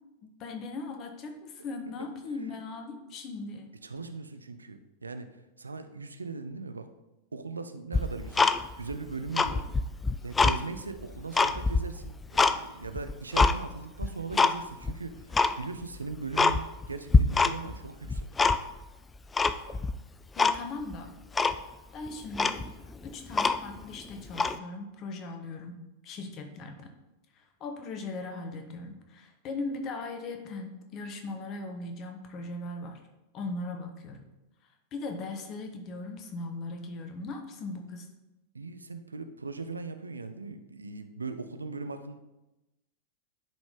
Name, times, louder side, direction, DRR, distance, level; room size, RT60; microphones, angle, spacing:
voice 1, 0.2-3.7 20.3-21.1 21.9-22.7 23.0-26.9 27.3-33.0 33.3-34.2 34.9-38.1, left 3 dB, 35° left, 4 dB, 1.2 m, -39 dB
voice 2, 3.8-5.3 5.6-6.9 7.3-8.5 8.8-9.6 10.2-18.3 38.5-42.2, right 4 dB, 75° right, 9 dB, 0.5 m, -39 dB
Tick-tock, 7.9-8.9 9.3-10.6 11.0-12.6 13.0-13.6 14.0-14.6 14.8-14.9 15.3-15.6 16.0-16.1 16.4-16.9 17.1-17.8 18.0-18.8 19.4-19.9 20.4-20.6 20.9-21.0 21.4-21.6 22.1-22.2 22.3-23.8 24.3-24.6, left 4 dB, 15° left, 0.4 m, -24 dB
10.5 x 5.0 x 3.7 m, 0.97 s
figure-of-eight pair, 90°, 0 cm